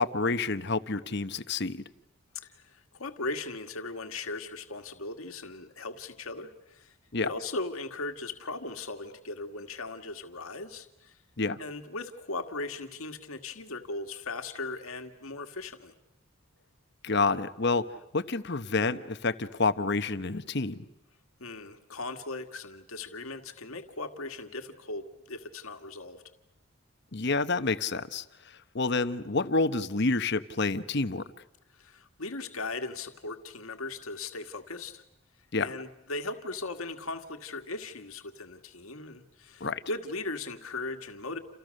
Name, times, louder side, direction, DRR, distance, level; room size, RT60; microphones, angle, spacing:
voice 1, 0.0-1.8 7.1-7.3 11.4-11.6 17.0-17.8 18.1-20.8 27.1-28.2 28.7-31.2 35.5-35.7 39.6-39.8, left 3 dB, 50° left, 11 dB, 1.1 m, -28 dB
voice 2, 2.4-7.0 7.2-11.2 11.6-15.9 21.4-26.2 31.7-35.0 35.6-41.4, left 3 dB, 80° left, 6 dB, 1.9 m, -38 dB
29.5 x 29.0 x 6.5 m, 0.82 s
head